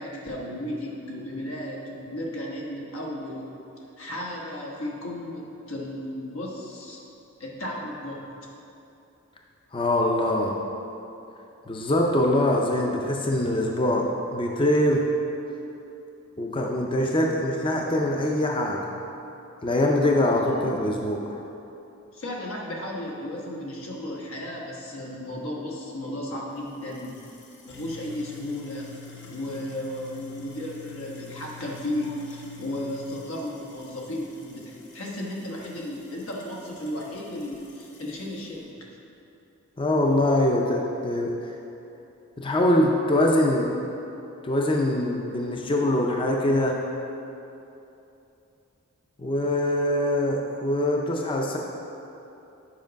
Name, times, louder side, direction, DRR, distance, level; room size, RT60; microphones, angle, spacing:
voice 1, 0.0-3.5 4.0-7.0 7.4-8.2 20.3-20.8 22.1-27.2 27.6-28.9 29.3-38.7, left 1 dB, 85° left, -2 dB, 1.3 m, -34 dB
voice 2, 9.7-10.6 11.7-14.1 14.3-15.0 16.4-19.0 19.6-21.4 39.8-41.5 42.4-43.7 44.4-46.8 49.2-51.6, left 1 dB, 25° left, 0 dB, 0.5 m, -23 dB
sound 1, 26.6-38.6, left 5 dB, 60° left, 1.1 m, -48 dB
7.5 x 5.3 x 5.2 m, 2.9 s
head